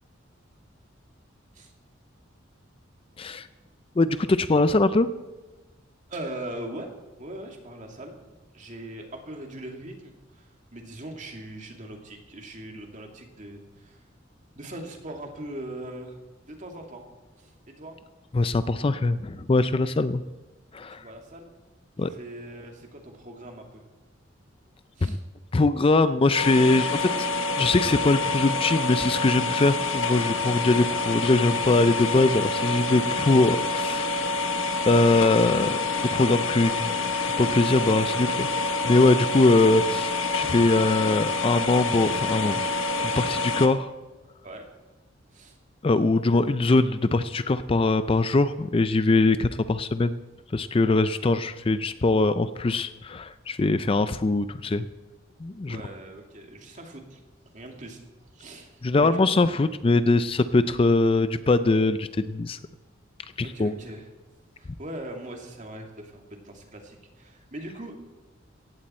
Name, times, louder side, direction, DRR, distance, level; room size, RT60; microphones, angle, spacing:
voice 1, 4.0-5.1 18.3-20.2 20.7-21.0 22.0-22.1 25.0-25.2 25.5-27.3 27.6-34.1 34.9-35.8 36.1-37.0 37.2-38.5 38.8-42.6 43.0-43.9 45.8-50.1 50.5-54.9 55.4-55.8 58.8-62.6 63.4-63.7, left 2 dB, 30° left, 13 dB, 0.4 m, -22 dB
voice 2, 6.1-6.9 7.2-8.2 8.5-14.0 14.5-16.2 16.4-17.0 17.4-18.0 20.9-21.5 22.0-23.8 25.0-25.2 44.4-44.6 45.3-45.6 55.7-57.2 57.5-58.0 58.3-59.4 63.4-64.1 64.6-68.0, right 1 dB, 40° right, 3 dB, 2.3 m, -40 dB
sound 1, 26.3-43.7, left 3 dB, 85° left, 1.3 m, -27 dB
17.5 x 15.0 x 4.3 m, 1.2 s
head